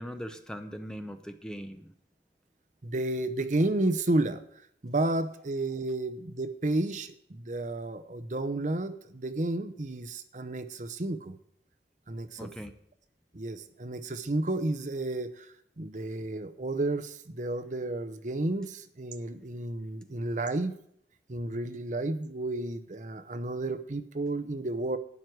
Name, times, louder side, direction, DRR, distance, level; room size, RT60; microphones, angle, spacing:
voice 1, 0.0-1.9 12.4-12.7, equal, 5° left, 7 dB, 0.7 m, -40 dB
voice 2, 2.8-4.4 4.8-11.4 12.1-12.5 13.3-15.5 15.8-20.7 21.3-25.0, right 2 dB, 40° right, 11 dB, 0.7 m, -31 dB
12.5 x 9.4 x 4.7 m, 0.68 s
head